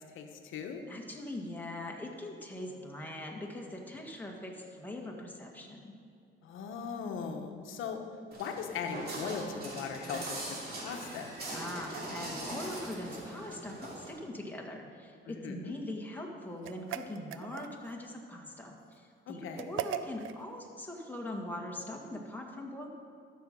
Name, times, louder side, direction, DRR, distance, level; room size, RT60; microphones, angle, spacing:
voice 1, 0.1-0.8 6.4-8.0 8.3-11.3 15.3-15.7 19.3-19.7, left 6 dB, 85° left, 4 dB, 1.1 m, -39 dB
voice 2, 0.9-5.9 11.5-22.9, left 1 dB, 10° left, -1 dB, 1.8 m, -42 dB
Walk footsteps, 8.3-14.1, right 1 dB, 50° right, 2.9 m, -41 dB
sound 1, 16.6-18.0 19.6-20.4, right 10 dB, 85° right, 0.5 m, -39 dB
12.5 x 6.8 x 5.3 m, 2.4 s
cardioid pair, 90°, 20 cm